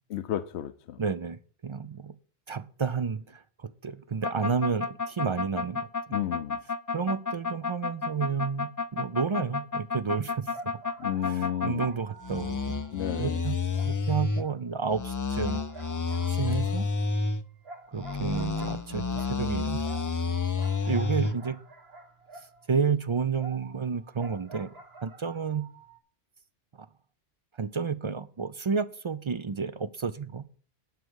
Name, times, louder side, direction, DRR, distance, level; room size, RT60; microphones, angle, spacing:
voice 1, 0.1-1.0 6.1-6.6 11.0-11.9 12.9-13.4, left 11 dB, 75° left, 0.9 m, -32 dB
voice 2, 1.0-2.1 2.5-5.9 6.9-10.8 11.3-12.8 13.2-13.6 13.8-15.9 16.3-16.9 17.9-19.9 20.9-21.6 22.3-24.7 25.0-25.7 26.8-26.9 27.5-30.4, right 5 dB, 45° right, 0.4 m, -31 dB
sound 1, 4.2-11.9 12.2-14.4 14.9-17.4 17.9-21.3, left 4 dB, 30° left, 0.4 m, -30 dB
sound 2, 9.9-10.0 10.5-13.4 13.7-15.1 15.4-22.8 23.4-26.0, right 3 dB, 65° right, 1.7 m, -48 dB
11.5 x 4.8 x 7.9 m
omnidirectional pair, 1.1 m